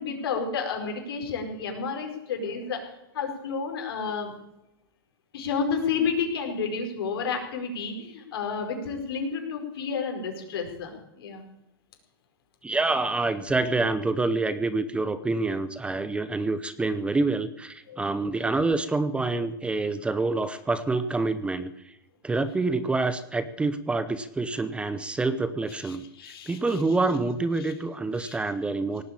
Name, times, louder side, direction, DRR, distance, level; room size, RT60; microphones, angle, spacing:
voice 1, 0.0-2.8 3.1-4.3 5.3-11.4 17.9-18.0 25.8-26.8 27.6-27.7 28.2-28.4, left 5 dB, 80° left, 3 dB, 4.8 m, -31 dB
voice 2, 12.6-21.9 22.2-26.0 26.5-29.0, right 3 dB, 10° right, 13 dB, 0.7 m, -27 dB
18.0 x 8.1 x 8.7 m, 0.89 s
supercardioid pair, 140°, 12 cm